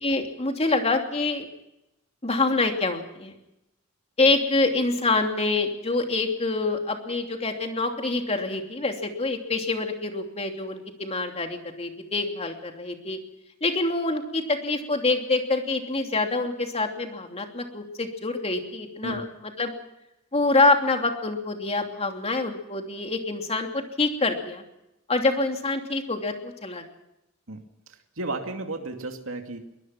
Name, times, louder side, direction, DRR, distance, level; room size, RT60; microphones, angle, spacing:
voice 1, 0.0-1.5 2.2-3.3 4.2-13.2 13.6-19.2 19.6-19.7 20.3-24.6 25.1-26.8, left 3 dB, 30° left, 4 dB, 3.0 m, -26 dB
voice 2, 27.5-29.6, right 2 dB, 80° right, 5 dB, 2.5 m, -34 dB
23.0 x 19.5 x 5.9 m, 0.88 s
head